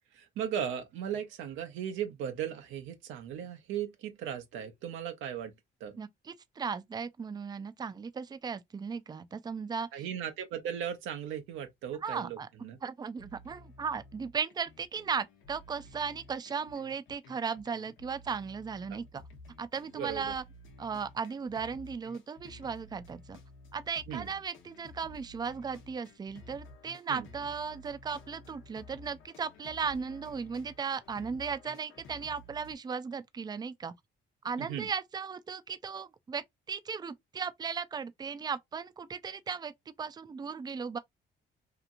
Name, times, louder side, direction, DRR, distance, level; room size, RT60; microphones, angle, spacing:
voice 1, 0.1-5.5 5.8-6.0 9.9-12.8 18.9-19.0 19.9-20.3 24.1-24.3 27.1-27.3 34.6-34.9, right 9 dB, 90° right, 0.6 m, -37 dB
voice 2, 6.0-9.9 12.0-12.5 12.8-19.2 19.6-20.4 20.8-23.4 23.7-33.9 34.4-39.7 40.0-41.0, right 6 dB, 20° right, 0.4 m, -36 dB
sound 1, 13.2-32.7, left 2 dB, 80° left, 0.9 m, -53 dB
2.9 x 2.5 x 2.4 m
cardioid pair, 90°, 20 cm